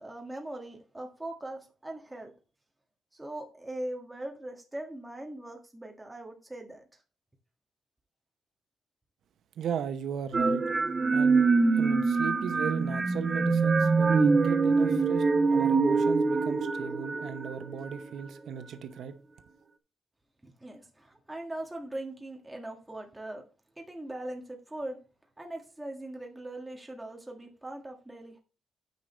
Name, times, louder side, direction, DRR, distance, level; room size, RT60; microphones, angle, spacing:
voice 1, 0.0-2.3 3.1-6.9 20.4-23.4 23.8-25.0 25.4-28.4, right 1 dB, 10° right, 1.6 m, -40 dB
voice 2, 9.6-10.6 11.1-11.5 11.8-15.2 15.5-19.2, right 8 dB, 75° right, 0.8 m, -36 dB
sound 1, 10.3-18.0, right 4 dB, 25° right, 0.7 m, -24 dB
9.5 x 5.1 x 4.4 m
wide cardioid pair, 170°, 0 cm